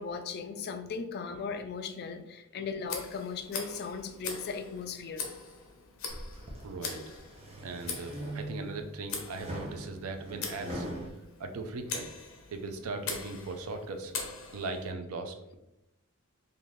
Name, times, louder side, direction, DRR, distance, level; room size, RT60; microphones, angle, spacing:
voice 1, 0.0-5.3, left 5 dB, 50° left, 8 dB, 0.3 m, -37 dB
Tick, 2.8-14.9, left 5 dB, 65° left, 0.7 m, -42 dB
sound 1, 6.1-6.6 7.1-8.8 9.3-11.1, right 1 dB, 25° right, 0.7 m, -40 dB
voice 2, 6.6-7.2 7.5-10.9 11.4-12.1 12.5-14.1 14.5-15.6, right 3 dB, 75° right, 6 dB, 0.5 m, -39 dB
3.9 x 2.6 x 3.1 m, 0.89 s
head